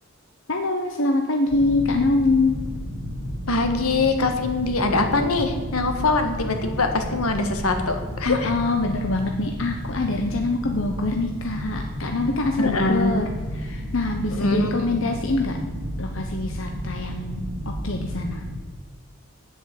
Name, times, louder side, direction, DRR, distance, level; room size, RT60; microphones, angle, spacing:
voice 1, 0.5-2.6 8.2-15.6 16.0-18.4, left 2 dB, 65° left, 3 dB, 0.9 m, -24 dB
sound 1, 1.5-18.6, equal, 60° right, 3.3 m, -32 dB
voice 2, 3.5-8.5 12.6-13.2 14.3-15.0, left 3 dB, 85° left, 6 dB, 1.5 m, -23 dB
9.1 x 8.2 x 7.7 m, 1.4 s
head